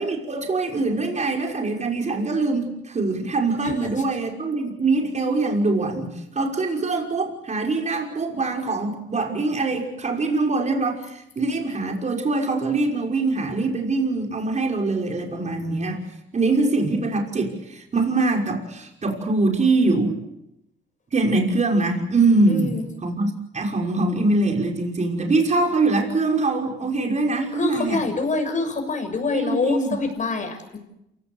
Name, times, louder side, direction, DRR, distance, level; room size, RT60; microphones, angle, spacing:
voice 1, 0.0-16.0 16.3-20.2 21.1-28.0 29.3-29.9, right 3 dB, 35° right, 2 dB, 5.7 m, -23 dB
voice 2, 22.5-22.8 27.5-30.8, left 3 dB, 40° left, 5 dB, 7.0 m, -26 dB
28.0 x 17.5 x 8.2 m, 0.83 s
cardioid pair, 90°, 20 cm